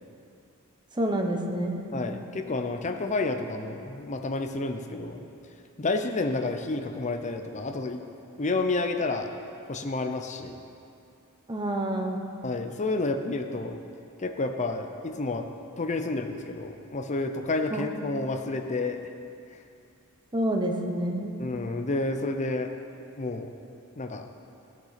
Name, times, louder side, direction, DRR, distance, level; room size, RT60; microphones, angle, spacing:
voice 1, 1.0-1.9 11.5-12.3 17.7-17.8 20.3-21.4, right 1 dB, 20° right, 2 dB, 0.9 m, -28 dB
voice 2, 1.9-5.2 5.8-8.0 8.4-9.3 9.7-10.5 12.4-13.8 14.2-15.4 15.8-19.0 21.4-22.7 23.2-23.5 24.0-24.2, left 3 dB, 35° left, 5 dB, 0.6 m, -30 dB
15.5 x 6.1 x 5.8 m, 2.6 s
head